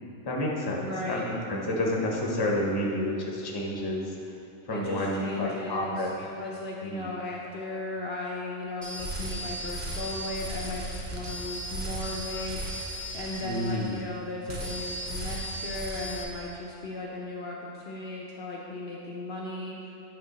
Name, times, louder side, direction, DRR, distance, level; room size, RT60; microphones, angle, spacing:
voice 1, 0.2-4.1 4.7-6.1 6.8-7.1 13.4-13.9, left 1 dB, 25° left, -2 dB, 0.6 m, -30 dB
voice 2, 0.8-1.3 4.7-12.8 13.1-19.8, left 2 dB, 60° left, -3 dB, 0.7 m, -36 dB
sound 1, 8.8-14.2 14.5-16.2, right 1 dB, 40° right, 0.8 m, -36 dB
8.9 x 3.4 x 4.0 m, 2.7 s
omnidirectional pair, 1.4 m